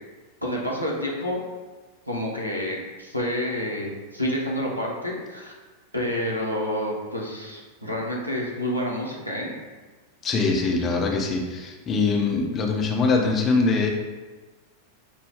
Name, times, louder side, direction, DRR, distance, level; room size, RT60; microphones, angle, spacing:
voice 1, 0.4-1.4 2.1-5.5 5.9-9.5, equal, 90° right, -3 dB, 0.8 m, -28 dB
voice 2, 10.2-13.9, left 4 dB, 25° left, 1 dB, 0.7 m, -23 dB
6.2 x 2.2 x 3.6 m, 1.3 s
figure-of-eight pair, 90°, 0 cm